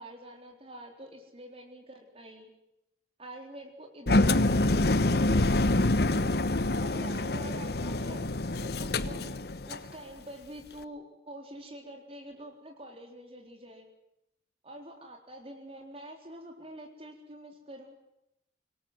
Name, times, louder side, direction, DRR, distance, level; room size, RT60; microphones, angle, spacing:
voice 1, 0.0-2.5 3.2-6.3 6.8-8.3 8.6-9.3 9.7-13.8 14.6-17.9, right 1 dB, 35° right, 2 dB, 3.9 m, -46 dB
Engine, 4.1-9.9, left 2 dB, 60° left, 1.0 m, -26 dB
25.5 x 19.5 x 7.9 m, 0.83 s
head